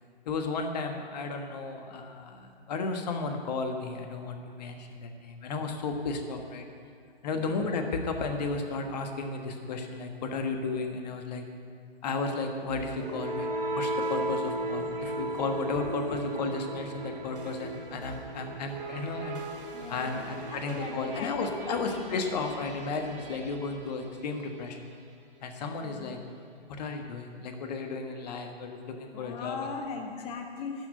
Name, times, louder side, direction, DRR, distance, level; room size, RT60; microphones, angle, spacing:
voice 1, 0.2-6.6 7.2-11.4 12.0-13.5 13.8-19.4 19.9-24.9 25.4-26.2 26.8-29.6, left 3 dB, 40° left, 5 dB, 1.4 m, -33 dB
sound 1, 12.7-24.6, right 1 dB, 55° right, 2.4 m, -36 dB
voice 2, 19.7-21.5 21.8-22.0 25.8-26.1 29.1-30.9, left 4 dB, 15° left, 3 dB, 0.8 m, -39 dB
12.0 x 6.2 x 9.3 m, 2.3 s
figure-of-eight pair, 125°, 32 cm